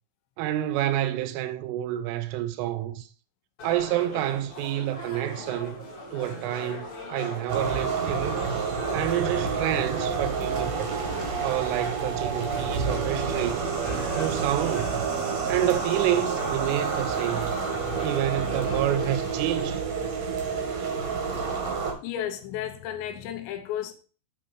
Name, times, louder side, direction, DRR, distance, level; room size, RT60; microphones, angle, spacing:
voice 1, 0.4-3.1 3.6-5.8 6.1-8.5 8.9-10.9 11.4-13.7 14.1-15.0 15.5-17.6 18.0-19.8, right 12 dB, 90° right, 3.3 m, -28 dB
sound 1, 3.6-19.7, left 1 dB, 40° left, 2.9 m, -40 dB
sound 2, 7.5-21.9, right 5 dB, 70° right, 1.6 m, -29 dB
voice 2, 22.0-23.9, left 10 dB, 75° left, 2.9 m, -33 dB
9.2 x 4.1 x 4.5 m
omnidirectional pair, 5.6 m